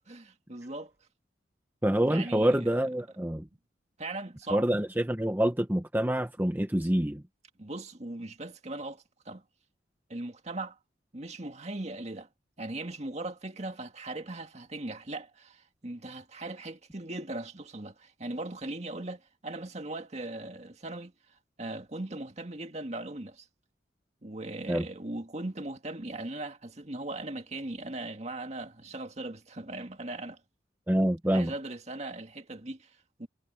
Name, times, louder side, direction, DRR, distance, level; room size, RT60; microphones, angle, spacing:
voice 1, 0.1-0.9 2.0-2.7 3.2-3.4 4.0-4.7 7.6-9.4 10.1-10.8 11.1-12.3 12.6-21.1 21.6-23.5 24.2-30.4 31.2-33.3, right 2 dB, 35° right, 2.0 m, -39 dB
voice 2, 1.8-3.5 4.5-7.2 24.7-24.9 30.9-31.5, right 1 dB, 10° right, 0.8 m, -26 dB
head